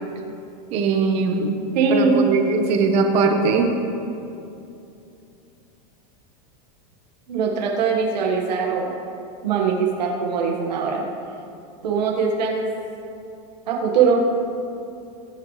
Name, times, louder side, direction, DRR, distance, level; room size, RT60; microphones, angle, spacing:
voice 1, 0.7-1.6 1.9-3.7, right 4 dB, 30° right, 4 dB, 1.1 m, -20 dB
voice 2, 1.7-2.3 7.3-8.9 9.4-11.0 11.8-12.7 13.7-14.3, right 5 dB, 85° right, -1 dB, 1.7 m, -21 dB
21.0 x 9.5 x 3.3 m, 2.7 s
supercardioid pair, 175°, 21 cm